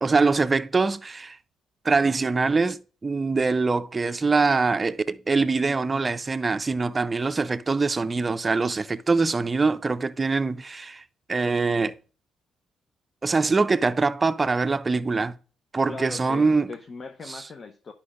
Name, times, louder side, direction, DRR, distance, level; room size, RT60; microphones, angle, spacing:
voice 1, 0.0-1.4 1.8-11.0 11.3-12.0 13.2-15.4 15.7-16.7 17.3-17.4, right 4 dB, 25° right, 0.5 m, -23 dB
voice 2, 15.9-17.9, left 4 dB, 45° left, 0.7 m, -39 dB
9.6 x 5.7 x 2.5 m
cardioid pair, 90°, 0 cm